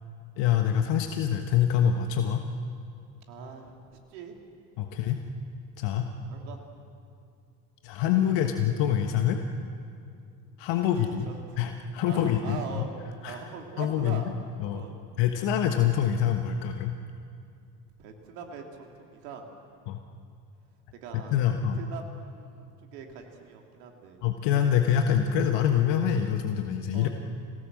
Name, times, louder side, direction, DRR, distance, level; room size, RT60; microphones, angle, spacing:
voice 1, 0.4-2.5 4.8-5.2 5.8-6.1 7.8-9.4 10.6-11.3 11.6-12.6 13.2-13.4 13.8-14.2 14.6-14.8 15.2-16.9 19.9-20.0 21.3-21.8 24.2-27.1, left 9 dB, 60° left, 5 dB, 1.5 m, -25 dB
voice 2, 3.3-4.5 4.9-5.0 6.2-6.7 8.4-8.5 10.8-11.6 12.1-12.9 13.2-14.3 14.7-15.0 15.5-15.6 18.0-19.5 20.9-24.2 26.9-27.1, right 6 dB, 70° right, 3 dB, 2.9 m, -43 dB
27.0 x 18.0 x 7.5 m, 2.5 s
hypercardioid pair, 65°, 48 cm